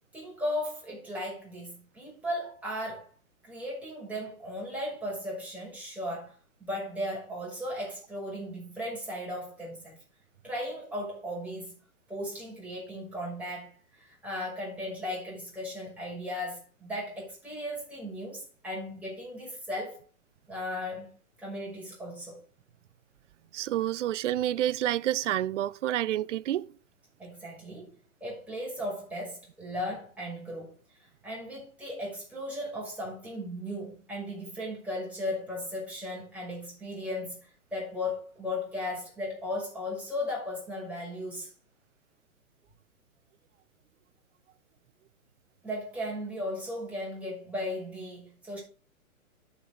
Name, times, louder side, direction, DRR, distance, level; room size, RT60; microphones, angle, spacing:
voice 1, 0.1-3.1 3.4-6.3 6.6-10.0 10.4-11.7 12.1-20.0 20.5-21.1 21.4-22.4 27.2-30.7 31.2-41.5 45.6-48.6, left 1 dB, 5° right, 6.2 m, -36 dB
voice 2, 23.5-26.7, right 12 dB, 55° right, 0.5 m, -28 dB
11.0 x 6.0 x 5.2 m
hypercardioid pair, 130°, 43 cm